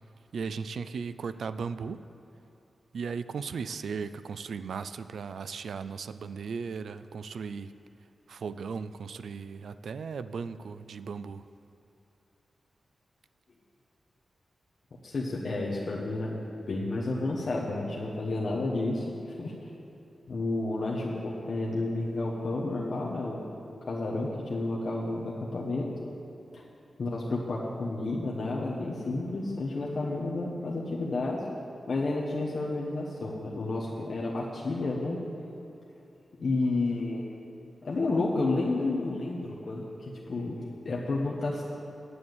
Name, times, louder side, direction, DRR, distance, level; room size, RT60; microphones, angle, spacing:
voice 1, 0.3-2.0 2.9-7.7 8.3-11.5, right 5 dB, 85° right, 13 dB, 0.3 m, -36 dB
voice 2, 15.0-19.1 19.4-19.5 20.3-23.5 23.9-25.9 26.5-26.6 27.0-31.4 31.9-35.2 36.4-37.2 37.8-41.6, left 2 dB, 50° left, -5 dB, 1.1 m, -31 dB
9.7 x 7.1 x 8.0 m, 2.8 s
wide cardioid pair, 175°, 0 cm